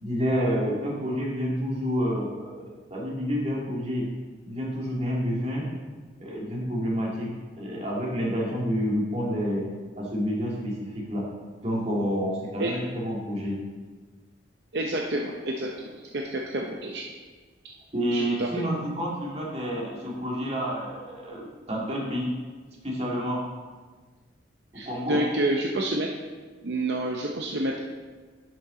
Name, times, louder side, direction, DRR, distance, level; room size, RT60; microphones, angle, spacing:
voice 1, 0.0-4.1 4.4-5.7 6.2-7.3 7.6-9.6 10.0-11.2 11.6-13.6 17.9-22.3 22.8-23.4 24.9-25.2, equal, 35° right, -4 dB, 2.1 m, -29 dB
voice 2, 14.7-17.0 18.1-18.5 24.7-26.1 26.6-27.8, right 1 dB, 60° right, 0 dB, 0.7 m, -29 dB
10.5 x 6.9 x 3.8 m, 1.4 s
head